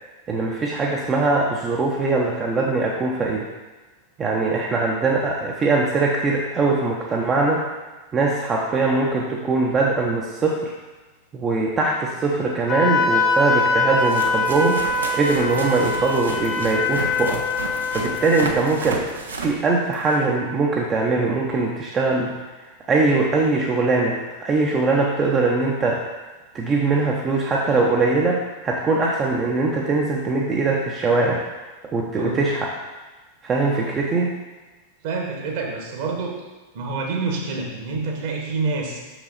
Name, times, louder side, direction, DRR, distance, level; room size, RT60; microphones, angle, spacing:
voice 1, 0.3-3.5 4.2-7.6 8.1-10.7 11.3-17.4 17.9-19.1 19.4-22.3 22.9-26.0 26.5-31.4 31.8-32.7 33.4-34.3, right 3 dB, 25° right, -1 dB, 0.8 m, -21 dB
sound 1, 11.8-11.9 13.1-13.2 14.0-20.3 25.5-25.6 26.5-26.6 26.8-27.0 28.9-29.0, right 3 dB, 70° right, 0.8 m, -33 dB
Wind instrument woodwind instrument, 12.7-18.5, left 3 dB, 30° left, 0.7 m, -23 dB
voice 2, 35.0-36.3 36.7-39.0, right 4 dB, 50° right, 1 dB, 1.5 m, -27 dB
6.3 x 6.0 x 4.1 m, 1.2 s
figure-of-eight pair, 90°, 0 cm